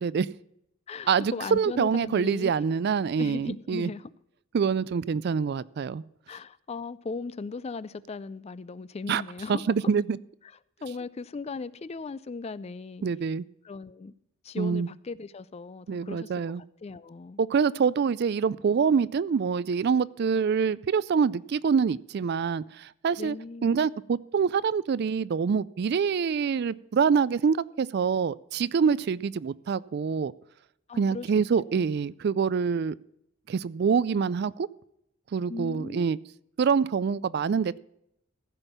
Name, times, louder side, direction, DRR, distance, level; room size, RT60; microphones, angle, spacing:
voice 1, 0.0-0.3 1.1-3.9 4.5-6.0 9.1-9.2 9.5-10.2 13.0-13.4 14.6-14.9 15.9-16.6 17.4-23.4 23.6-30.3 31.0-33.0 33.5-34.7 35.3-36.2 36.6-37.8, right 6 dB, 50° right, 0.3 m, -25 dB
voice 2, 0.9-2.5 3.2-4.1 6.3-9.6 10.8-13.1 13.6-14.1 14.4-17.4 23.2-23.8 30.9-31.3 31.6-32.0 35.5-36.2, left 4 dB, 30° left, 0.4 m, -38 dB
15.0 x 5.4 x 7.0 m
head